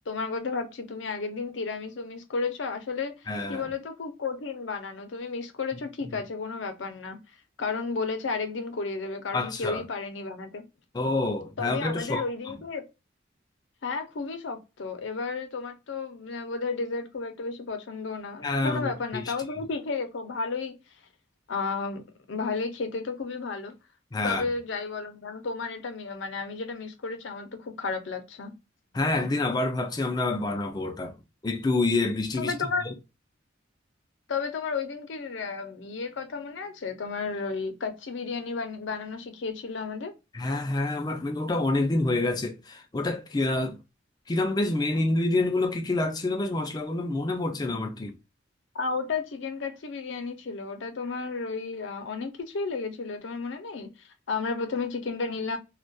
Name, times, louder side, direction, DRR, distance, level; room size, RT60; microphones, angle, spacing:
voice 1, 0.1-3.1 3.5-7.2 7.6-10.6 11.6-12.8 13.8-20.7 21.5-23.7 24.2-28.5 32.4-32.8 34.3-40.1 48.7-53.9 54.3-55.6, left 4 dB, 80° left, 0.5 m, -32 dB
voice 2, 3.3-3.7 9.3-9.8 10.9-12.5 18.4-19.3 24.1-24.5 28.9-31.2 31.4-32.5 32.8-32.9 40.3-43.8 44.3-48.2, left 2 dB, 20° left, 0.3 m, -27 dB
2.2 x 2.2 x 2.5 m
head